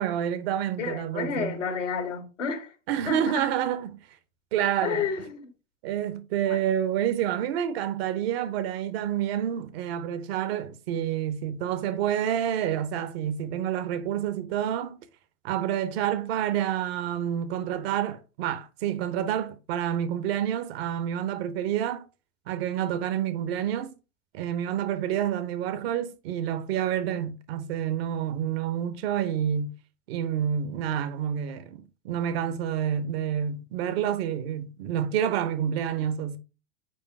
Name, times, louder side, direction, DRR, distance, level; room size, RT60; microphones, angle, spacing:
voice 1, 0.0-1.6 2.9-4.0 4.5-5.1 5.8-15.0 15.4-22.1 22.5-24.0 24.3-29.7 30.1-36.4, right 10 dB, 50° right, 0.9 m, -28 dB
voice 2, 0.8-2.7 3.1-3.4 4.8-5.5 6.5-6.6, left 6 dB, 75° left, 1.5 m, -31 dB
5.0 x 4.5 x 4.5 m
figure-of-eight pair, 85°, 38 cm